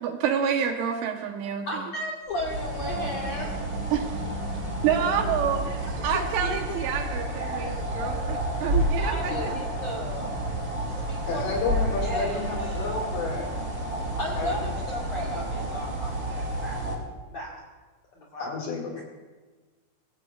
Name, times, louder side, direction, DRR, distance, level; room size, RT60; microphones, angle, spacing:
voice 1, 0.0-1.9 3.9-4.1 4.8-9.5, right 8 dB, 75° right, 4 dB, 3.3 m, -28 dB
voice 2, 1.6-3.6 6.1-6.8 9.0-10.3 11.1-11.4 12.0-12.4 12.7-12.8 14.2-16.8 17.3-17.5 18.2-18.5 19.0-19.1, left 1 dB, 85° left, -4 dB, 1.5 m, -34 dB
sound 1, 2.3-17.0, right 1 dB, 30° right, 1.8 m, -30 dB
sound 2, 2.9-7.1, equal, 20° left, 2.6 m, -41 dB
voice 3, 11.3-13.7 14.3-14.7 18.4-19.0, left 3 dB, 55° left, 1 dB, 3.5 m, -31 dB
22.0 x 17.0 x 2.4 m, 1.3 s
omnidirectional pair, 6.0 m